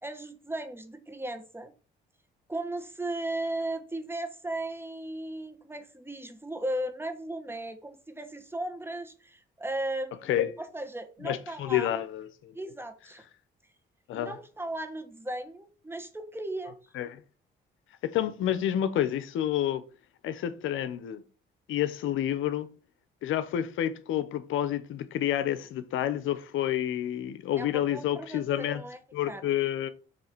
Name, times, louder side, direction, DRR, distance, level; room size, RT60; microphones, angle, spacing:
voice 1, 0.0-1.7 2.5-10.3 10.6-11.9 12.5-13.2 14.1-16.8 27.6-29.0 29.3-29.4, right 1 dB, 10° right, 1.4 m, -36 dB
voice 2, 11.2-12.5 14.1-14.3 16.9-17.2 18.0-19.8 20.2-21.2 21.7-22.7 23.2-28.8 29.1-29.9, left 11 dB, 85° left, 0.8 m, -29 dB
7.7 x 3.2 x 6.0 m
cardioid pair, 90°, 20 cm